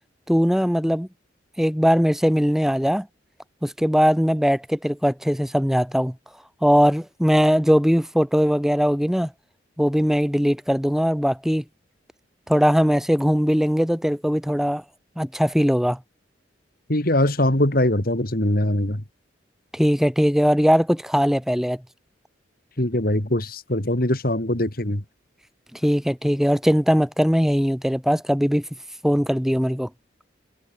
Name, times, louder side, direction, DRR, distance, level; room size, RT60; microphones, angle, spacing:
voice 1, 0.3-1.1 1.6-3.1 3.6-6.1 6.6-9.3 9.8-11.6 12.5-14.8 15.2-16.0 19.7-21.8 25.8-28.6 29.0-29.9, equal, ahead, 3.2 m, -20 dB
voice 2, 16.9-19.0 22.8-25.0, left 1 dB, 50° left, 2.9 m, -22 dB
head